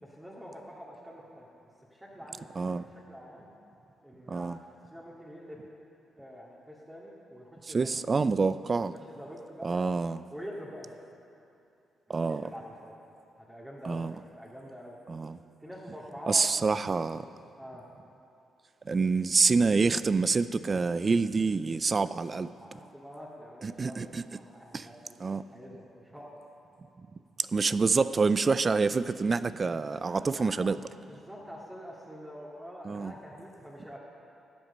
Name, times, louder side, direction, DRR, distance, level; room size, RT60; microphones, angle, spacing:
voice 1, 0.0-2.5 3.1-3.5 4.0-4.6 4.9-5.6 6.2-7.9 8.8-9.9 10.3-11.0 12.1-12.9 13.4-14.0 14.3-15.0 15.6-16.5 16.9-17.0 17.6-17.9 22.0-22.1 22.5-26.4 30.1-30.8 31.1-34.0, equal, 10° right, -5 dB, 2.2 m, -46 dB
voice 2, 2.6-2.9 4.3-4.6 7.7-8.9 9.6-10.2 12.1-12.4 13.8-14.1 15.1-15.4 16.3-17.2 18.9-22.5 23.6-24.2 24.7-24.9 25.2-25.4 27.4-30.8 32.8-33.1, right 4 dB, 40° right, 15 dB, 0.4 m, -27 dB
12.5 x 7.8 x 6.7 m, 2.7 s
supercardioid pair, 50°, 0 cm